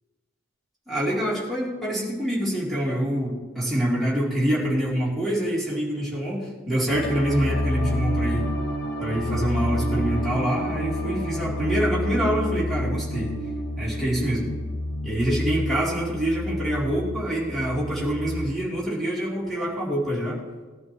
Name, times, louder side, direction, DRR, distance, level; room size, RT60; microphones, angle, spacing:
voice 1, 0.9-8.4 9.0-13.3 13.8-14.5 15.0-20.4, equal, ahead, -7 dB, 3.3 m, -26 dB
sound 1, 6.9-18.5, equal, 50° left, 1.3 m, -29 dB
20.0 x 11.5 x 3.1 m, 1.3 s
head